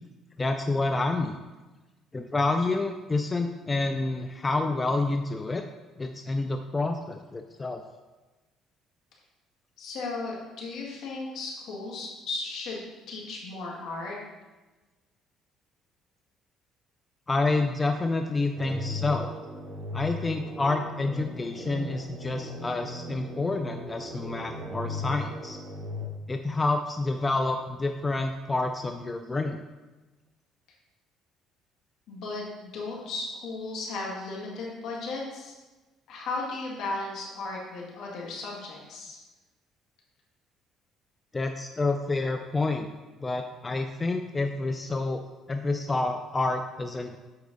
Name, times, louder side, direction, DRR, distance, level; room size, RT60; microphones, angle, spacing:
voice 1, 0.4-1.4 2.1-5.6 6.0-7.8 17.3-19.3 19.9-25.6 26.3-29.6 41.3-42.9 43.2-45.2 45.5-47.2, left 2 dB, 20° left, 5 dB, 0.4 m, -28 dB
voice 2, 9.8-12.8 13.1-14.2 32.1-35.5 36.1-39.2, left 3 dB, 70° left, -2 dB, 2.1 m, -35 dB
sound 1, 18.6-26.1, left 2 dB, 50° right, 1.3 m, -37 dB
8.1 x 4.6 x 4.0 m, 1.2 s
cardioid pair, 120°, 0 cm